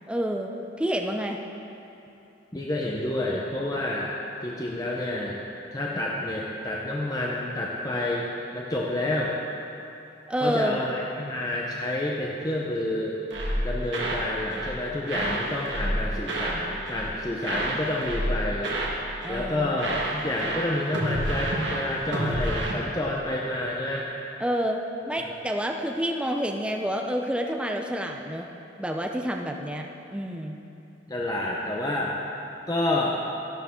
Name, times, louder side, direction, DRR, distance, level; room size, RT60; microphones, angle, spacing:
voice 1, 0.1-1.4 10.3-10.8 19.2-19.7 24.4-28.5 28.8-29.9 30.1-30.6, equal, 5° right, 2 dB, 0.5 m, -28 dB
voice 2, 2.5-4.1 4.4-5.4 5.7-9.4 10.4-13.2 13.6-18.7 19.3-24.1 25.2-25.3 31.1-32.2 32.7-33.2, left 1 dB, 20° left, -4 dB, 0.9 m, -29 dB
sound 1, 13.3-14.2 14.5-14.8 15.1-16.6 16.8-17.1 17.4-19.0 19.2-19.5 19.8-22.7, right 1 dB, 70° right, 1.7 m, -29 dB
13.5 x 11.5 x 3.8 m, 2.8 s
head